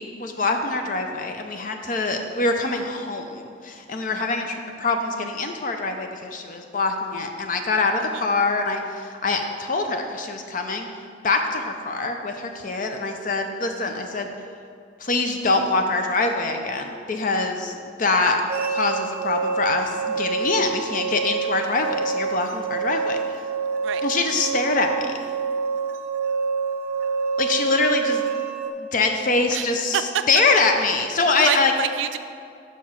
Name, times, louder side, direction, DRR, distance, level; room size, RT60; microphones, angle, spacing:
voice 1, 0.0-10.9 11.2-14.3 15.0-18.4 18.7-23.2 24.0-25.0 27.4-28.3 28.8-30.0 30.3-31.7, left 3 dB, 45° left, 5 dB, 0.5 m, -24 dB
sound 1, 18.5-28.7, right 5 dB, 50° right, 0.7 m, -27 dB
voice 2, 29.5-30.2 31.4-32.2, right 9 dB, 80° right, 10 dB, 0.3 m, -27 dB
5.6 x 4.8 x 5.6 m, 2.4 s
head